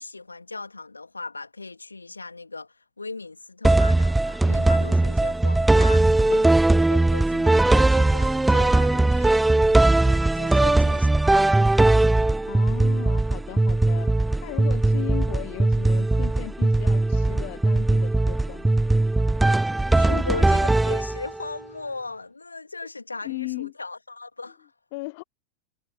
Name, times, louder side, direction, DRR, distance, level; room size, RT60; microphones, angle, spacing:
voice 1, 0.0-9.5 10.0-11.5 19.4-19.5 19.9-24.7, left 3 dB, 80° left, 3.3 m, -38 dB
sound 1, 3.6-21.5, right 2 dB, 5° right, 0.5 m, -20 dB
voice 2, 12.5-18.8 20.1-20.3 23.2-23.7 24.9-25.2, left 25 dB, 50° left, 1.1 m, -36 dB
figure-of-eight pair, 90°, 0 cm